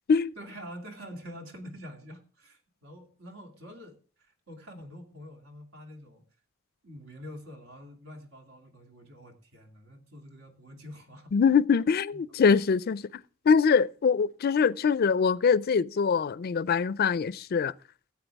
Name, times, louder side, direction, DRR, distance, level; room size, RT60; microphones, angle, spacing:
voice 1, 0.4-6.2 6.8-11.3 12.1-12.2, equal, 80° right, 2.5 m, -46 dB
voice 2, 11.3-13.0 13.5-17.7, left 6 dB, 50° left, 0.4 m, -23 dB
15.5 x 8.5 x 3.4 m
head